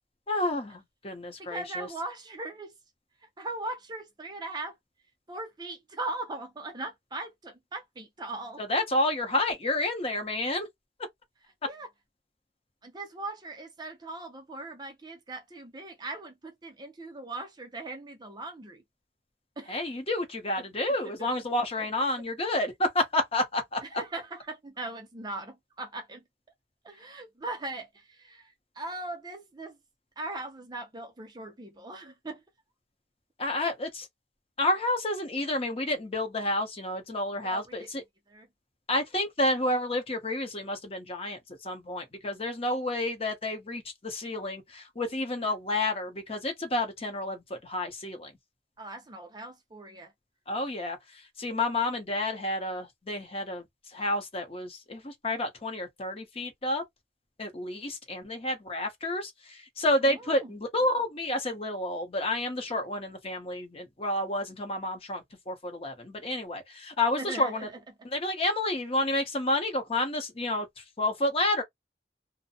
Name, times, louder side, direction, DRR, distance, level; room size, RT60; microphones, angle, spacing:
voice 1, 0.3-1.9 8.6-10.7 19.7-23.8 33.4-34.1 34.6-38.0 38.9-48.3 50.5-51.0 51.4-53.6 53.9-56.8 57.4-67.7 68.1-70.7 71.0-71.6, left 1 dB, 35° left, 0.8 m, -30 dB
voice 2, 1.4-2.7 3.4-4.7 5.3-8.6 11.6-11.9 12.8-18.8 19.6-19.8 21.2-21.3 21.8-21.9 23.8-26.3 26.8-29.8 30.2-32.4 37.4-37.9 38.3-38.5 48.8-50.1 60.0-60.5 67.2-67.8, right 2 dB, 25° right, 0.6 m, -39 dB
2.5 x 2.1 x 2.7 m
head